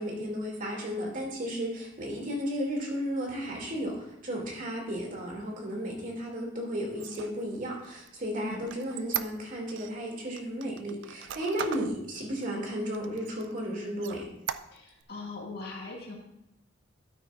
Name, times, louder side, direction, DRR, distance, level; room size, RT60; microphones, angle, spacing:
voice 1, 0.0-14.3, equal, 45° right, -1 dB, 2.7 m, -34 dB
Squeak, 6.9-9.9 10.4-11.9 12.4-12.5 12.9-13.6 14.0-15.0, right 9 dB, 65° right, 0.4 m, -38 dB
voice 2, 8.4-8.7 14.7-16.1, left 3 dB, 50° left, -2 dB, 2.2 m, -40 dB
12.5 x 9.3 x 2.6 m, 0.83 s
head